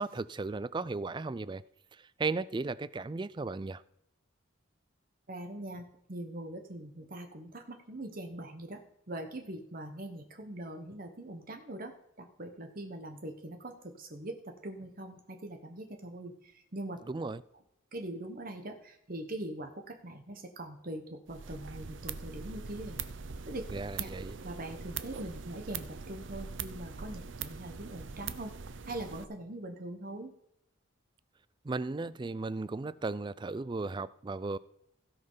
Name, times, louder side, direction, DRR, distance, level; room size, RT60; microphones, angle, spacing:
voice 1, 0.0-1.6 1.9-3.8 17.1-17.4 23.7-24.4 31.6-34.6, right 3 dB, 20° right, 0.3 m, -35 dB
voice 2, 5.3-8.8 9.1-17.0 17.9-23.0 23.5-23.7 24.0-24.1 24.4-28.5 28.9-30.3, right 1 dB, 45° right, 1.1 m, -42 dB
sound 1, 21.3-29.2, right 6 dB, 65° right, 0.7 m, -42 dB
16.5 x 5.5 x 5.6 m
head